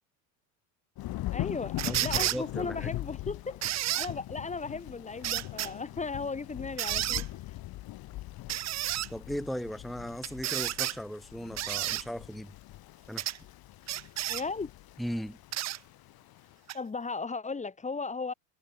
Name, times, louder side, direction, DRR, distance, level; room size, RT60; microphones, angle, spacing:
Thunder / Rain, 1.0-16.6, left 16 dB, 50° left, 4.0 m, -41 dB
voice 1, 1.3-3.6 3.9-7.2 14.3-14.7 16.7-18.3, left 4 dB, 15° left, 2.2 m, -36 dB
sound 1, 1.8-2.4 3.6-4.1 5.2-5.7 6.8-7.3 8.5-9.1 10.2-11.0 11.6-12.0 13.2-13.4 13.9-14.4 15.5-15.8 16.7-16.8, right 13 dB, 35° right, 0.9 m, -31 dB
voice 2, 1.9-2.9 9.1-12.6 13.1-13.3 15.0-15.4, equal, ahead, 1.9 m, -37 dB
supercardioid pair, 115°, 45 cm